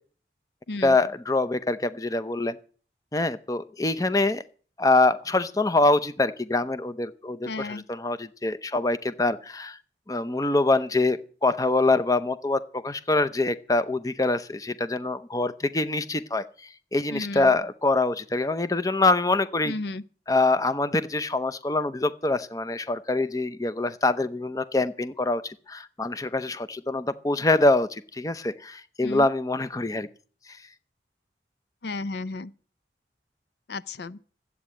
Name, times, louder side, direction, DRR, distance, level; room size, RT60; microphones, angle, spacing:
voice 1, 0.8-2.6 3.1-4.4 4.8-9.8 10.1-16.4 16.9-19.7 20.3-30.1, left 2 dB, 20° left, 0.7 m, -24 dB
voice 2, 7.5-7.8 17.1-17.5 19.6-20.0 29.0-29.3 31.8-32.5 33.7-34.2, left 3 dB, 70° left, 0.6 m, -33 dB
13.0 x 8.5 x 9.0 m
head